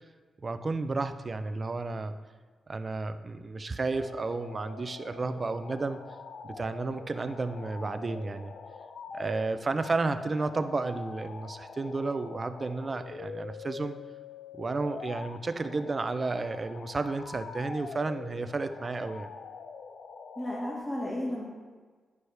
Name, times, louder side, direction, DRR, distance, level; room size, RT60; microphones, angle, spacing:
voice 1, 0.4-2.2 2.7-6.1 6.4-8.5 9.1-13.9 14.5-19.3, right 3 dB, 40° right, 10 dB, 0.5 m, -32 dB
sound 1, 3.9-20.8, left 5 dB, 70° left, 0.5 m, -44 dB
voice 2, 20.4-21.4, left 1 dB, 15° left, -6 dB, 1.9 m, -33 dB
9.7 x 6.2 x 3.4 m, 1.4 s
cardioid pair, 75°, 0 cm